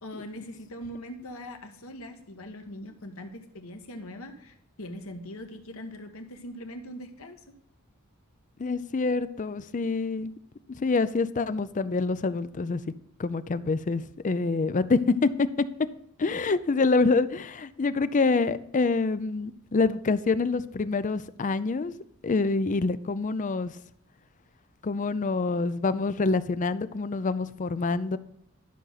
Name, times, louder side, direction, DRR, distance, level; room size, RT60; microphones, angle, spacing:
voice 1, 0.0-7.5, equal, 65° left, 5 dB, 1.3 m, -41 dB
voice 2, 8.6-10.3 10.7-12.8 13.2-15.5 16.2-22.0 22.2-23.7 24.8-28.2, left 3 dB, 35° left, 15 dB, 0.4 m, -26 dB
11.5 x 6.3 x 4.0 m, 0.77 s
head